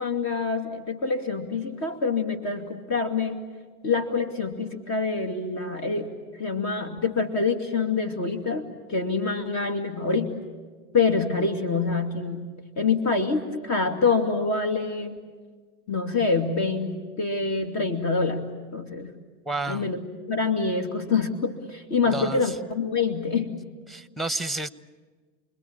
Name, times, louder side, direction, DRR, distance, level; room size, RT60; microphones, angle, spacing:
voice 1, 0.0-3.4 3.8-10.4 10.9-15.2 15.9-18.5 18.7-19.1 19.7-20.0 20.3-23.6, left 4 dB, 45° left, 6 dB, 2.6 m, -26 dB
voice 2, 19.5-20.0 22.1-22.5 23.9-24.7, right 2 dB, ahead, 14 dB, 1.0 m, -30 dB
29.0 x 21.5 x 8.8 m, 1.4 s
hypercardioid pair, 95°, 36 cm